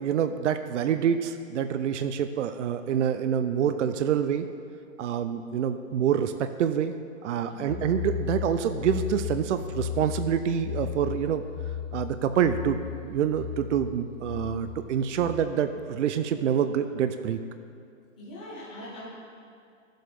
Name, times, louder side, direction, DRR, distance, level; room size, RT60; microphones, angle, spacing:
voice 1, 0.0-4.5 5.0-6.9 7.2-11.4 11.9-17.4, right 8 dB, 65° right, 9 dB, 0.6 m, -27 dB
voice 2, 7.5-7.8 18.2-19.0, left 1 dB, 5° left, -10 dB, 0.4 m, -42 dB
sound 1, 7.7-15.5, left 10 dB, 75° left, 0.8 m, -35 dB
13.0 x 7.6 x 3.5 m, 2.3 s
hypercardioid pair, 170°, 40 cm